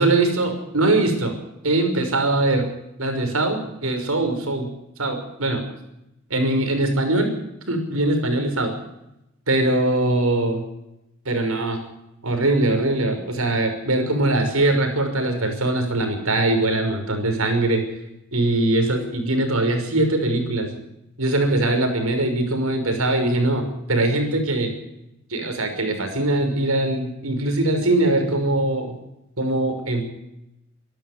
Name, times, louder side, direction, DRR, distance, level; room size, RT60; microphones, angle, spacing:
voice 1, 0.0-1.3 1.6-2.7 3.0-4.7 5.0-5.6 6.3-7.3 7.7-8.7 9.5-10.6 11.2-11.8 12.2-17.8 18.3-20.7 21.2-24.7 25.3-29.0 29.4-30.0, right 2 dB, 80° right, 5 dB, 5.8 m, -21 dB
25.5 x 13.0 x 8.1 m, 0.87 s
head